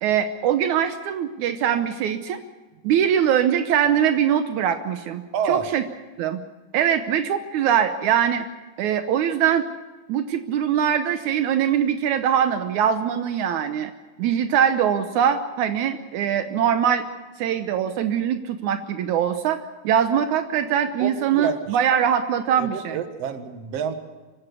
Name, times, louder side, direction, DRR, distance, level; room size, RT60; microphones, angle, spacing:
voice 1, 0.0-2.4 2.8-5.8 6.2-6.4 6.7-8.5 8.8-9.7 10.1-13.9 14.2-17.0 17.4-19.6 19.8-23.0, right 9 dB, 80° right, 8 dB, 2.3 m, -22 dB
voice 2, 5.3-5.7 21.0-21.8 22.6-23.9, right 7 dB, 60° right, 8 dB, 2.4 m, -28 dB
25.0 x 15.5 x 8.2 m, 1.3 s
omnidirectional pair, 3.5 m